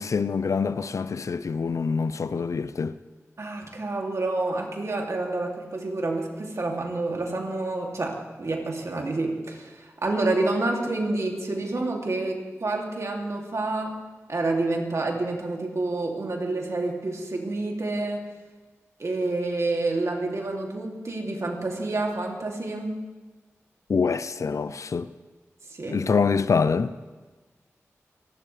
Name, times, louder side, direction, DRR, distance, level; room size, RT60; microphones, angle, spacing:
voice 1, 0.0-2.9 23.9-25.1 25.9-26.9, left 5 dB, 70° left, 0.5 m, -25 dB
voice 2, 3.4-14.0 14.3-18.3 19.0-23.0 25.7-26.0, right 2 dB, 65° right, 2.7 m, -28 dB
28.0 x 12.5 x 3.3 m
cardioid pair, 45°, 5 cm